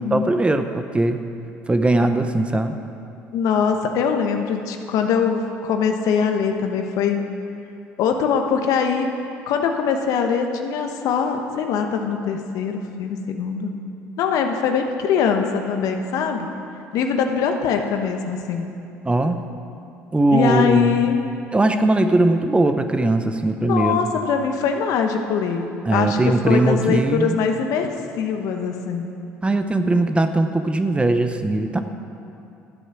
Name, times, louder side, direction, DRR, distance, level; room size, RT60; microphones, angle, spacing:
voice 1, 0.1-1.2 1.7-2.8 19.0-19.5 20.1-21.0 21.5-24.0 25.9-27.4 29.4-31.8, right 2 dB, 15° right, 8 dB, 0.9 m, -20 dB
voice 2, 3.3-7.2 8.0-9.1 9.5-13.7 14.2-16.5 16.9-18.7 20.3-21.2 23.6-29.1, left 6 dB, 65° left, 5 dB, 1.1 m, -22 dB
12.5 x 8.2 x 6.2 m, 2.6 s
hypercardioid pair, 60°, 6 cm